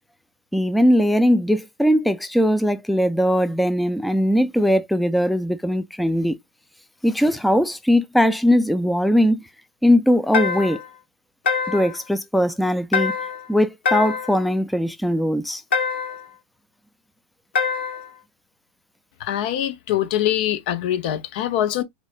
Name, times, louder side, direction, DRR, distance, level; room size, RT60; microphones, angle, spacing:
voice 1, 0.5-6.4 7.0-9.4 9.8-10.8 11.7-13.1 13.5-15.6, equal, ahead, 0.3 m, -20 dB
sound 1, 10.3-10.9 11.5-12.0 12.9-13.5 13.9-14.4 15.7-16.3 17.6-18.1, left 5 dB, 80° left, 1.1 m, -24 dB
voice 2, 19.2-21.8, left 12 dB, 60° left, 0.7 m, -23 dB
4.2 x 2.3 x 2.4 m
hypercardioid pair, 105°, 6 cm